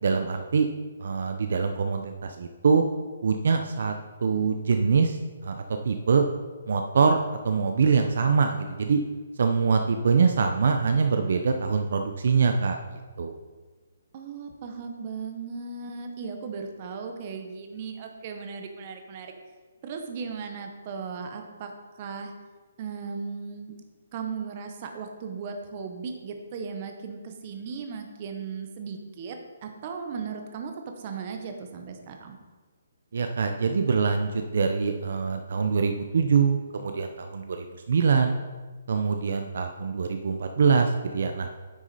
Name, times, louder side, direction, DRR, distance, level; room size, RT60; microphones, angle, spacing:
voice 1, 0.0-0.7 1.0-2.8 3.2-3.9 4.2-6.3 6.7-7.2 7.4-9.0 9.4-13.4 33.1-38.4 38.9-41.5, right 5 dB, 55° right, 5 dB, 0.5 m, -24 dB
voice 2, 14.1-19.3 19.8-21.7 22.0-22.3 22.8-23.7 24.1-29.4 29.6-32.4, right 5 dB, 25° right, 4 dB, 0.8 m, -37 dB
9.5 x 6.1 x 4.1 m, 1.3 s
hypercardioid pair, 175°, 0 cm